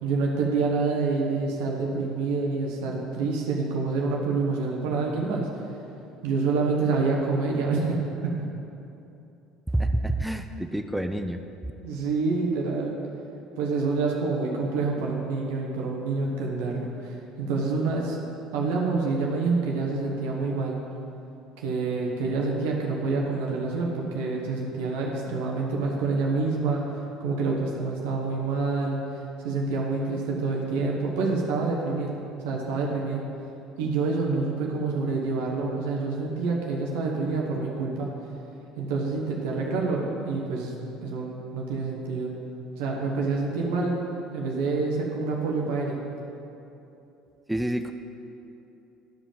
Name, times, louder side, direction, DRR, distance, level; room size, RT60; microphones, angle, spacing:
voice 1, 0.0-5.5 6.2-8.3 11.8-13.0 13.6-18.2 18.5-20.8 21.6-26.8 27.2-29.0 29.4-32.1 32.4-33.3 33.8-38.1 38.8-40.7 41.0-42.3 42.8-44.0 44.3-46.0, right 4 dB, 75° right, -1 dB, 1.2 m, -27 dB
voice 2, 9.7-11.4 47.5-47.9, right 1 dB, 5° right, 7 dB, 0.5 m, -27 dB
12.0 x 5.1 x 5.7 m, 2.8 s
hypercardioid pair, 65°, 0 cm